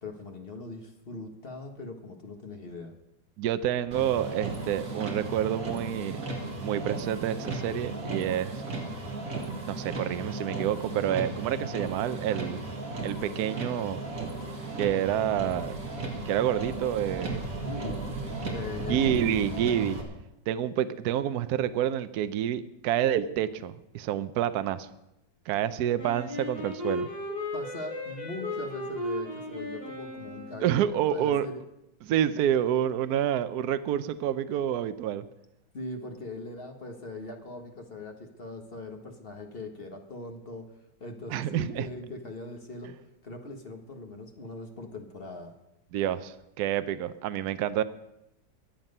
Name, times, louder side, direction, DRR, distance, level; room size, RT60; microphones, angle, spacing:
voice 1, 0.0-2.9 17.6-18.0 18.5-19.4 27.5-30.6 31.1-31.6 35.7-42.9 43.2-45.5, left 2 dB, 35° left, 4 dB, 1.4 m, -40 dB
voice 2, 3.4-6.2 6.6-8.6 9.3-12.6 13.0-14.0 14.8-15.7 16.3-17.4 18.9-20.0 20.5-24.9 25.5-27.1 30.6-31.5 32.1-35.2 41.3-41.9 45.9-47.8, right 10 dB, 70° right, 12 dB, 1.1 m, -28 dB
Motor vehicle (road), 3.9-20.0, right 2 dB, 50° right, 2.4 m, -35 dB
Wind instrument woodwind instrument, 26.0-31.0, left 1 dB, 65° left, 8.0 m, -36 dB
22.5 x 7.5 x 5.4 m, 0.87 s
omnidirectional pair, 1.9 m